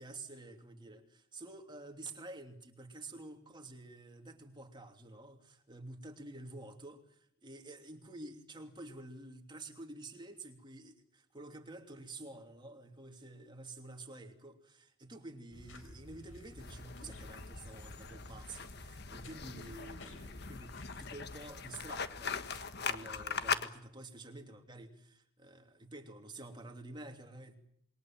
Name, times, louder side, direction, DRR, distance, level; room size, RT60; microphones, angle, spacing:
voice 1, 0.0-27.5, right 2 dB, 20° right, 2.9 m, -50 dB
sound 1, 15.5-21.1, left 1 dB, 70° left, 4.5 m, -53 dB
sound 2, 16.6-23.7, left 5 dB, 55° left, 1.4 m, -41 dB
27.0 x 22.5 x 7.5 m
head